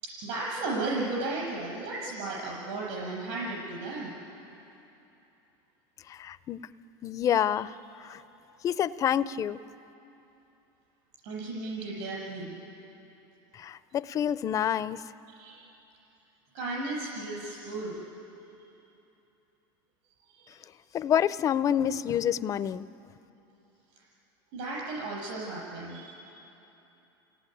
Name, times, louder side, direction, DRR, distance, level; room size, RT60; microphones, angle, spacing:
voice 1, 0.0-4.2 11.2-12.6 15.4-15.7 16.5-18.0 20.3-20.5 24.5-26.4, right 2 dB, 65° right, -4 dB, 7.4 m, -35 dB
voice 2, 6.1-6.7 7.0-8.2 8.6-9.6 13.5-15.0 20.9-22.9, left 9 dB, 30° left, 15 dB, 0.5 m, -28 dB
30.0 x 18.0 x 9.3 m, 3.0 s
supercardioid pair, 140°, 11 cm